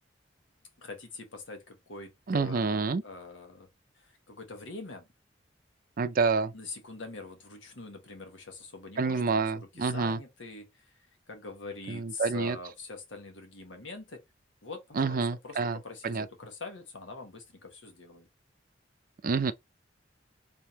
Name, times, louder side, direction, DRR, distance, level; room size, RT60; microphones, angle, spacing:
voice 1, 0.8-3.7 4.0-5.1 6.5-10.8 11.3-14.2 14.6-18.3, left 3 dB, 85° left, 1.4 m, -44 dB
voice 2, 2.3-3.0 6.0-6.5 9.0-10.2 11.9-12.6 15.0-16.3 19.2-19.5, right 4 dB, 50° right, 0.5 m, -28 dB
3.6 x 3.5 x 2.8 m
head